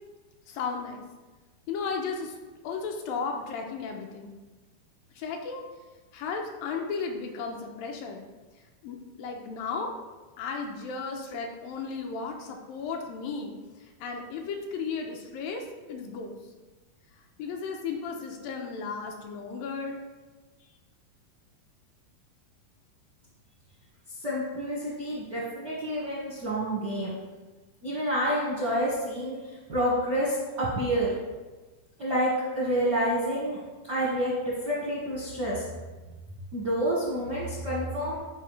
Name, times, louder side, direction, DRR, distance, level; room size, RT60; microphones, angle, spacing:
voice 1, 0.5-1.0 1.7-2.4 2.6-4.3 5.2-5.7 6.1-8.2 8.8-9.9 10.4-13.5 13.8-16.4 17.4-20.0, left 5 dB, 80° left, 2 dB, 2.2 m, -34 dB
voice 2, 24.2-27.1 27.8-29.4 29.7-31.1 32.0-33.6 33.9-34.4 34.6-35.6 36.5-38.2, equal, 70° right, -7 dB, 0.9 m, -28 dB
9.2 x 5.1 x 3.1 m, 1.2 s
omnidirectional pair, 4.3 m